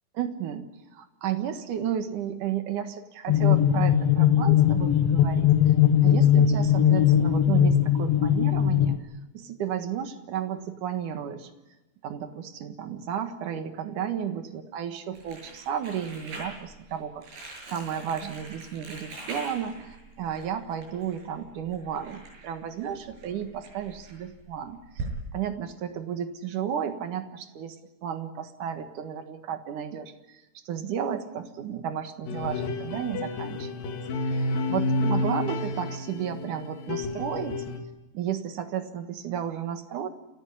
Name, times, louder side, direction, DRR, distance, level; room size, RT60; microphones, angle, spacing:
voice 1, 0.1-5.5 6.0-9.1 9.3-11.5 12.0-17.3 17.7-25.1 25.3-27.7 28.0-30.4 30.7-33.7 34.2-37.6 38.1-40.1, right 9 dB, 60° right, 8 dB, 2.7 m, -33 dB
sound 1, 3.3-9.0, left 9 dB, 90° left, 1.3 m, -20 dB
Crumpling crinkling, 15.1-25.1, right 3 dB, 80° right, 9.6 m, -43 dB
sound 2, 32.3-37.8, left 2 dB, 65° left, 3.4 m, -30 dB
28.5 x 14.5 x 9.9 m, 1.0 s
omnidirectional pair, 4.7 m